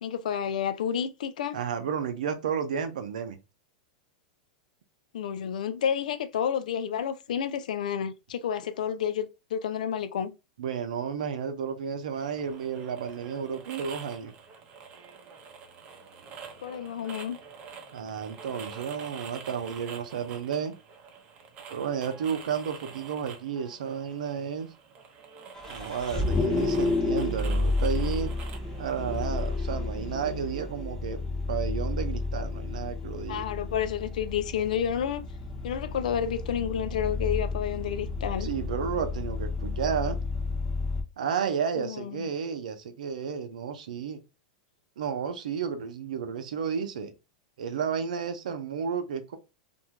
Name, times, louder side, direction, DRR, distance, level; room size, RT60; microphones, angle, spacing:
voice 1, 0.0-1.6 5.1-10.3 16.6-17.4 33.3-35.2 35.6-38.5 41.8-42.2, left 8 dB, 85° left, 0.4 m, -30 dB
voice 2, 1.5-3.4 10.6-14.3 17.9-20.7 21.7-24.7 25.7-28.3 28.8-31.2 31.5-33.5 38.4-40.2 41.2-44.2 45.0-47.1 47.6-49.4, right 7 dB, 85° right, 0.6 m, -32 dB
sound 1, 12.1-29.7, right 6 dB, 35° right, 0.7 m, -47 dB
Vehicle, 25.5-41.0, left 3 dB, 15° left, 0.9 m, -31 dB
2.6 x 2.1 x 2.9 m
hypercardioid pair, 130°, 4 cm